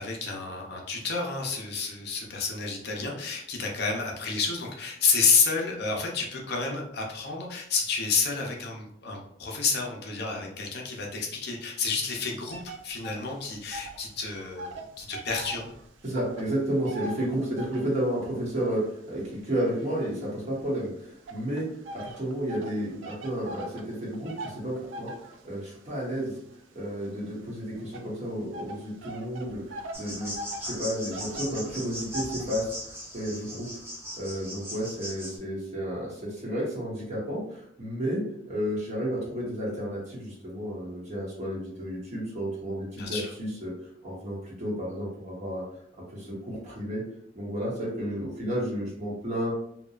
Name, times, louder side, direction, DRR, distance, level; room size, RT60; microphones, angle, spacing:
voice 1, 0.0-12.6 12.8-15.7 43.0-43.2, left 4 dB, 55° left, 0 dB, 0.5 m, -29 dB
sound 1, 12.5-14.1 14.3-18.0 18.6-20.6 21.3-32.3, right 1 dB, 80° right, 0.4 m, -42 dB
voice 2, 16.0-21.7 21.9-26.4 26.7-30.3 30.6-33.7 34.2-43.7 44.0-45.6 46.1-47.0 47.3-49.6, equal, 35° right, -5 dB, 1.0 m, -32 dB
sound 2, 29.9-35.4, equal, 10° right, 0.6 m, -39 dB
2.8 x 2.2 x 2.4 m, 0.71 s
head